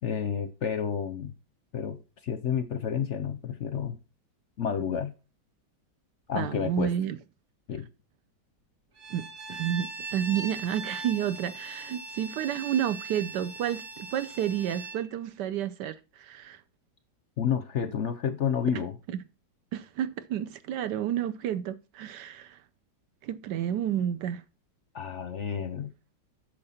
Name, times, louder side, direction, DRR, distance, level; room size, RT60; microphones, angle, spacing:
voice 1, 0.0-1.3 1.7-4.0 4.6-5.1 6.3-6.9 7.7-7.9 17.4-18.9 24.9-25.9, left 7 dB, 60° left, 0.8 m, -30 dB
voice 2, 6.3-7.2 9.1-16.6 19.1-19.2 19.7-22.6 23.2-24.4, right 10 dB, 75° right, 1.2 m, -30 dB
Bowed string instrument, 9.0-15.0, right 3 dB, 55° right, 2.4 m, -40 dB
8.8 x 6.5 x 4.2 m
omnidirectional pair, 1.9 m